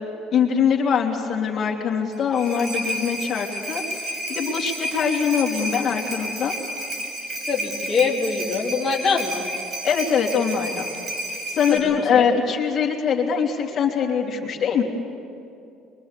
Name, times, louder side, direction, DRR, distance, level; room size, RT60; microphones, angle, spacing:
voice 1, 0.0-6.5 9.8-10.9 11.4-14.8, left 7 dB, 45° left, -1 dB, 3.2 m, -23 dB
sound 1, 2.1-11.8, right 1 dB, 35° right, 6.4 m, -31 dB
voice 2, 7.5-9.5 11.7-12.2, left 5 dB, 25° left, -5 dB, 2.8 m, -24 dB
23.5 x 23.0 x 8.2 m, 2.6 s
cardioid pair, 110°, 0 cm